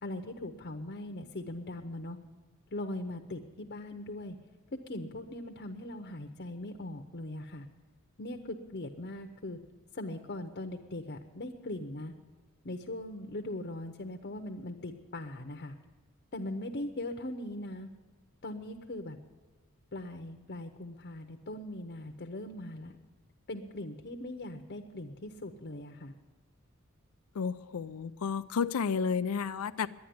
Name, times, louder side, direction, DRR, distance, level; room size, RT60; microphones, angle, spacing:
voice 1, 0.0-2.2 2.7-4.4 4.7-7.7 8.2-9.6 9.9-12.1 12.6-15.7 16.3-17.9 18.4-19.2 19.9-23.0 23.5-26.1, left 1 dB, 45° left, 5 dB, 0.8 m, -40 dB
voice 2, 27.3-29.9, left 6 dB, 85° left, 10 dB, 0.5 m, -31 dB
11.5 x 9.6 x 9.4 m, 1.3 s
head